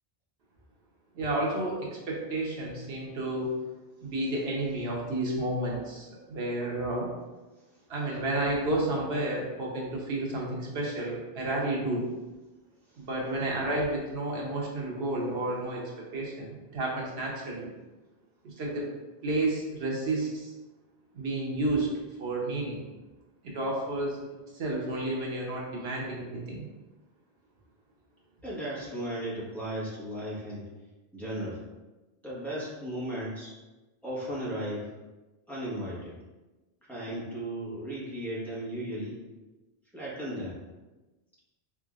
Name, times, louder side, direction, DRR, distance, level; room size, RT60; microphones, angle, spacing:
voice 1, 1.1-3.5 4.0-7.1 7.9-12.1 13.0-17.7 18.4-18.9 19.2-20.5 21.1-21.9 22.2-22.8 23.4-24.2 24.5-26.7, right 2 dB, 90° right, -2 dB, 1.1 m, -31 dB
voice 2, 28.4-30.7 31.1-31.6 32.2-33.5 34.0-34.9 35.5-36.2 36.9-39.2 39.9-40.6, right 1 dB, ahead, -10 dB, 1.3 m, -36 dB
3.8 x 3.6 x 2.4 m, 1.1 s
omnidirectional pair, 1.0 m